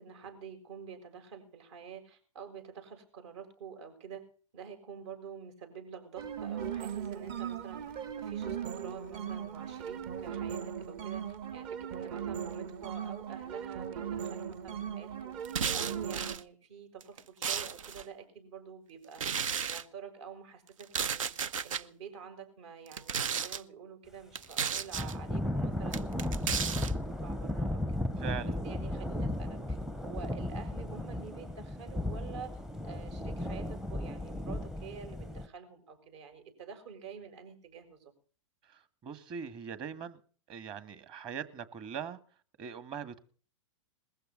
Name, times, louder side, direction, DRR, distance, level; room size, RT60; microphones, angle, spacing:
voice 1, 0.0-4.2 4.5-7.8 8.2-15.3 15.7-19.2 19.6-21.3 21.6-27.0 27.2-28.0 28.4-29.8 30.0-32.5 32.8-38.1, right 6 dB, 60° right, 7 dB, 6.8 m, -48 dB
sound 1, 6.2-16.4, right 8 dB, 45° right, 2.0 m, -38 dB
sound 2, 15.4-16.4 17.0-18.0 19.1-19.8 20.8-21.8 22.9-23.6 24.3-25.1 25.9-26.9, right 7 dB, 80° right, 0.9 m, -33 dB
Thunder / Rain, 24.9-35.5, left 1 dB, 5° right, 0.7 m, -35 dB
voice 2, 28.2-28.6 38.7-40.2 40.5-42.2 42.6-43.2, right 7 dB, 30° right, 12 dB, 2.1 m, -41 dB
21.0 x 15.0 x 4.0 m, 0.42 s
hypercardioid pair, 125°, 17 cm